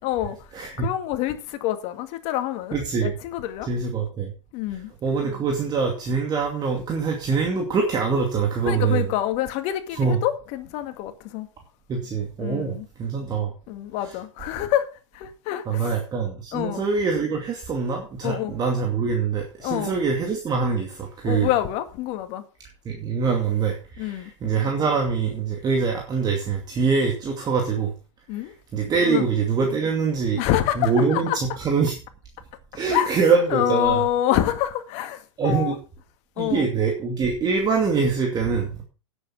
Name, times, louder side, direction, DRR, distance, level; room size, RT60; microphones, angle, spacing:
voice 1, 0.0-0.4 0.8-3.7 4.5-4.9 8.6-11.5 12.4-12.9 13.7-14.9 15.1-16.0 16.5-16.8 18.2-18.5 19.6-19.9 21.2-22.4 24.0-24.3 28.3-28.5 29.0-29.2 30.4-31.4 32.9-33.2 33.5-35.8 36.4-36.7, left 12 dB, 45° left, 2.0 m, -26 dB
voice 2, 0.5-0.9 2.7-3.1 3.6-4.3 5.0-9.1 9.9-10.2 11.9-13.5 14.0-14.1 15.7-21.5 22.9-27.9 28.4-30.4 30.8-32.0 32.7-34.0 35.4-35.8 36.4-38.7, right 5 dB, 25° right, 2.4 m, -24 dB
10.5 x 8.2 x 5.8 m
hypercardioid pair, 110°, 16 cm